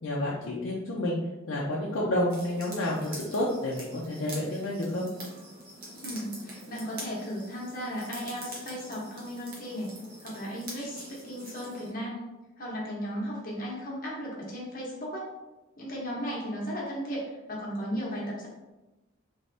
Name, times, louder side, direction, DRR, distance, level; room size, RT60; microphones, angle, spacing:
voice 1, 0.0-1.2 1.5-5.1, left 1 dB, 80° left, -5 dB, 0.6 m, -30 dB
sound 1, 2.3-11.9, right 1 dB, 45° right, 1.1 m, -45 dB
voice 2, 6.0-9.9 10.2-12.2 12.6-15.3 15.8-18.5, equal, 45° left, -4 dB, 1.1 m, -35 dB
3.4 x 3.3 x 2.7 m, 1.0 s
head